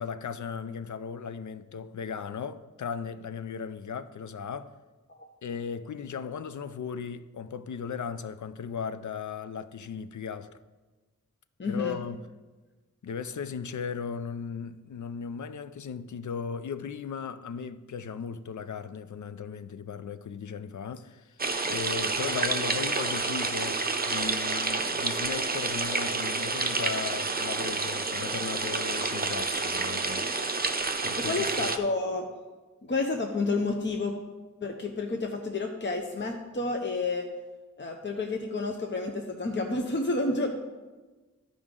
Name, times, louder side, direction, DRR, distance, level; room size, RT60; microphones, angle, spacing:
voice 1, 0.0-4.7 5.4-10.6 11.6-12.3 13.0-30.6 31.0-31.7, left 6 dB, 70° left, 0.5 m, -37 dB
voice 2, 11.6-12.0 31.1-32.3 32.8-34.2 34.6-37.3 37.8-40.5, left 3 dB, 35° left, 0.7 m, -30 dB
sound 1, 21.4-31.8, right 3 dB, 30° right, 0.6 m, -29 dB
12.5 x 5.0 x 3.7 m
wide cardioid pair, 85°, 32 cm